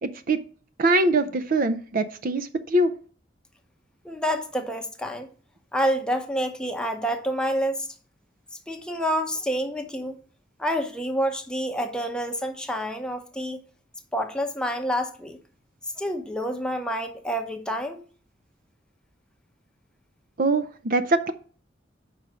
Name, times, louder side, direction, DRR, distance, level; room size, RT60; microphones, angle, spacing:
voice 1, 0.0-0.4 0.8-2.9 20.4-21.3, right 2 dB, 50° right, 0.5 m, -23 dB
voice 2, 4.0-5.3 5.7-7.9 8.7-10.2 10.6-13.6 14.1-15.4 16.0-18.0, equal, 5° left, 0.8 m, -28 dB
5.4 x 4.7 x 6.1 m
head